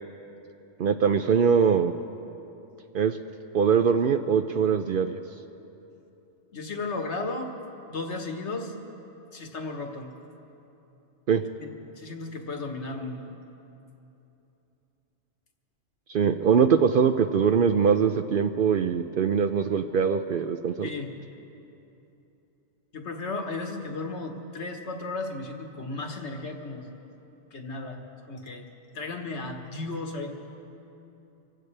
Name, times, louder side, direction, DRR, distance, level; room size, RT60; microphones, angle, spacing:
voice 1, 0.8-1.9 2.9-3.2 3.5-5.2 11.3-11.4 16.1-20.9, right 6 dB, 60° right, 7 dB, 0.6 m, -22 dB
voice 2, 6.5-7.5 7.9-8.7 9.3-10.1 11.6-13.3 20.8-21.2 22.9-26.9 27.5-28.7 28.9-30.3, left 3 dB, 70° left, 3 dB, 1.6 m, -35 dB
25.0 x 16.0 x 3.3 m, 2.9 s
omnidirectional pair, 1.2 m